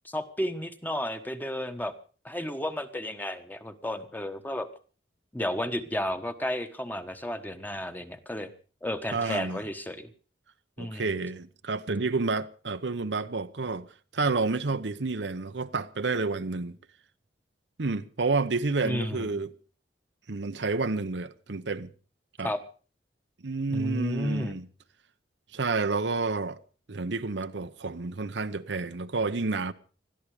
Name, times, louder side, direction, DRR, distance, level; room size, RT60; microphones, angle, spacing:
voice 1, 0.0-1.9 2.2-4.7 5.3-8.5 8.8-10.1 10.8-11.2 18.8-19.4 22.4-22.6 23.7-24.6, left 1 dB, 10° left, 1.3 m, -32 dB
voice 2, 9.1-9.6 10.8-13.9 14.1-16.8 17.8-19.5 20.3-21.9 22.4-22.5 23.4-24.7 25.5-26.6 26.9-29.7, right 3 dB, 80° right, 0.9 m, -30 dB
20.5 x 13.5 x 4.9 m
head